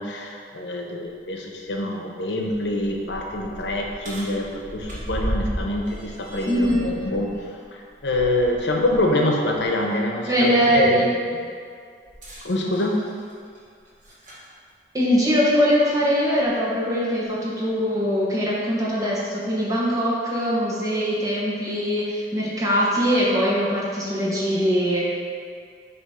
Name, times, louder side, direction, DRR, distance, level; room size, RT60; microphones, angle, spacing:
voice 1, 0.0-7.4 8.0-11.0 11.3-11.4 12.4-12.9, left 1 dB, 85° left, 0 dB, 0.8 m, -25 dB
sound 1, 1.7-1.8 2.3-9.1 9.5-9.6 12.1-14.5 15.5-15.6 16.4-16.5, equal, 45° right, 1.4 m, -35 dB
voice 2, 6.5-7.0 10.3-11.1 14.9-25.0, equal, 20° right, -6 dB, 1.2 m, -22 dB
7.1 x 3.0 x 5.0 m, 2.2 s
head